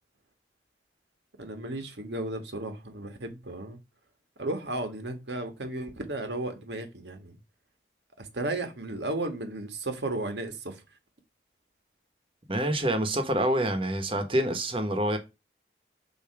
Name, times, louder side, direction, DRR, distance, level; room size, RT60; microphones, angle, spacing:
voice 1, 1.4-3.8 4.4-7.4 8.2-10.8, right 2 dB, 80° right, 1.4 m, -34 dB
voice 2, 12.5-15.2, right 1 dB, 30° right, 1.1 m, -27 dB
7.0 x 2.9 x 5.8 m
head